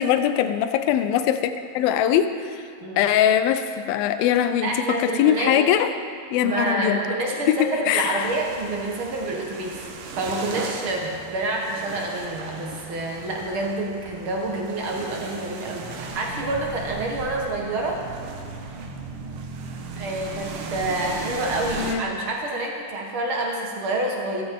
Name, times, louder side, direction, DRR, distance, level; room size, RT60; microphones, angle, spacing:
voice 1, 0.0-2.7 3.0-5.9 6.3-7.0 7.5-8.3 21.8-22.1, left 10 dB, 80° left, 10 dB, 2.3 m, -22 dB
voice 2, 4.6-5.6 6.4-9.8 10.1-18.0 20.0-24.4, right 2 dB, 70° right, -1 dB, 1.2 m, -28 dB
sound 1, 8.2-22.0, right 4 dB, 90° right, 3.2 m, -36 dB
16.0 x 14.5 x 3.7 m, 2.2 s
omnidirectional pair, 4.5 m